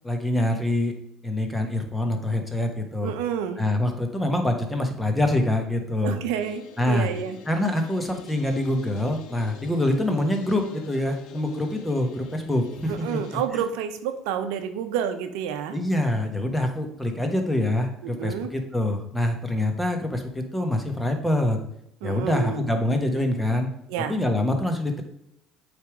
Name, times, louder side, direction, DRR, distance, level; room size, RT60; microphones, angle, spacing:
voice 1, 0.0-0.9 1.2-3.1 3.6-6.2 6.8-7.1 7.5-13.2 15.7-21.6 22.0-23.7 24.0-25.0, left 1 dB, 10° left, 5 dB, 1.3 m, -25 dB
voice 2, 3.0-3.6 6.0-7.4 12.9-15.8 18.0-18.5 22.0-22.7 23.9-24.2, right 8 dB, 80° right, 9 dB, 0.7 m, -29 dB
sound 1, 6.4-13.5, left 7 dB, 75° left, 0.8 m, -46 dB
8.1 x 3.5 x 4.9 m, 0.78 s
supercardioid pair, 90°, 0 cm